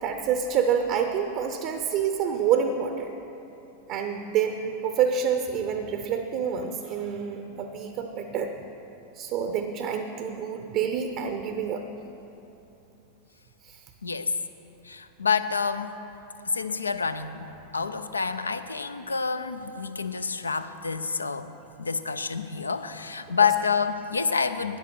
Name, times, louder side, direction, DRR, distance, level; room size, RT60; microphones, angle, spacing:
voice 1, 0.0-3.1 3.9-8.5 9.1-11.8 13.6-13.8, right 7 dB, 40° right, 6 dB, 0.7 m, -27 dB
voice 2, 14.8-15.9 16.5-21.5 21.8-24.8, left 5 dB, 75° left, 11 dB, 0.5 m, -28 dB
12.5 x 9.9 x 4.5 m, 2.9 s
figure-of-eight pair, 90°, 0 cm